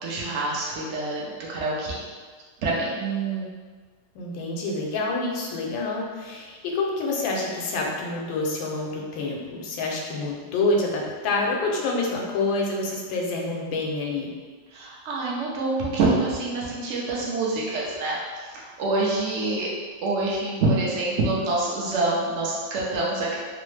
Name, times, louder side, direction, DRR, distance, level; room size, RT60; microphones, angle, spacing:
voice 1, 0.0-1.9 2.6-3.0 14.7-19.7 20.0-23.4, right 2 dB, 75° right, -5 dB, 0.6 m, -26 dB
voice 2, 3.0-3.5 4.1-14.3, left 2 dB, 90° left, -1 dB, 1.3 m, -27 dB
3.2 x 2.0 x 3.1 m, 1.5 s
omnidirectional pair, 2.0 m